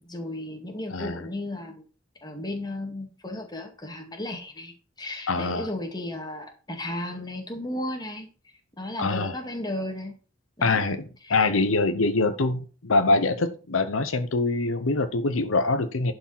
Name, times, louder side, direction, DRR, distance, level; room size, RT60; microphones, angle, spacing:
voice 1, 0.0-1.9 2.2-10.1 10.6-10.9 11.2-11.3, left 1 dB, 20° left, 2.2 m, -34 dB
voice 2, 0.9-1.2 5.3-5.7 9.0-9.3 10.6-11.0 11.3-16.1, left 3 dB, 80° left, 0.8 m, -24 dB
11.0 x 4.9 x 5.8 m
head